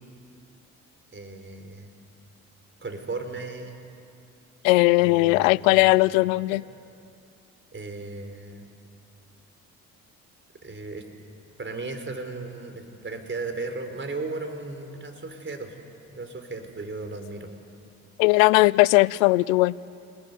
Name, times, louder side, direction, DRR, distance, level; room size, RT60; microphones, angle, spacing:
voice 1, 1.1-1.9 2.8-3.8 5.0-6.0 6.5-6.6 7.7-8.6 10.6-11.1 11.6-15.8 16.1-17.5, right 3 dB, 30° right, 6 dB, 4.8 m, -36 dB
voice 2, 4.6-6.6 18.2-19.7, left 21 dB, 80° left, 22 dB, 0.6 m, -18 dB
29.5 x 20.0 x 9.4 m, 2.5 s
hypercardioid pair, 50°, 40 cm